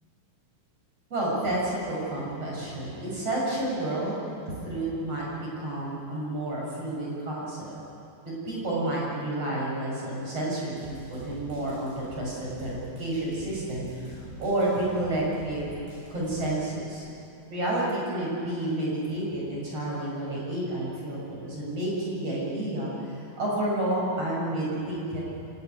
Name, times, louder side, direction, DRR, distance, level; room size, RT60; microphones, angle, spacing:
voice 1, 1.1-7.7 8.2-15.7 16.1-17.0 17.5-25.2, right 1 dB, 30° right, -4 dB, 8.1 m, -30 dB
sound 1, 10.8-16.6, right 1 dB, 70° right, 9.6 m, -44 dB
29.0 x 17.5 x 9.5 m, 2.7 s
omnidirectional pair, 5.4 m